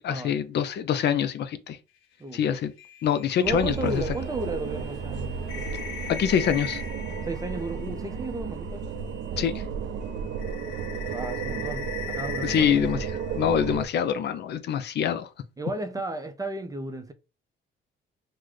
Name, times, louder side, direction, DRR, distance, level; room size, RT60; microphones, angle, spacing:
voice 1, 0.0-1.8 2.3-2.7 3.0-4.0 6.1-6.8 9.4-9.6 12.4-13.1 13.4-15.3, left 8 dB, 60° left, 0.4 m, -25 dB
sound 1, 2.8-9.6 10.0-14.0, left 8 dB, 85° left, 0.8 m, -40 dB
voice 2, 3.4-5.7 7.2-9.0 11.1-12.8 15.6-17.1, right 2 dB, 20° right, 0.5 m, -34 dB
sound 2, 3.4-13.9, right 6 dB, 65° right, 0.5 m, -33 dB
3.1 x 2.1 x 3.6 m
cardioid pair, 90°, 20 cm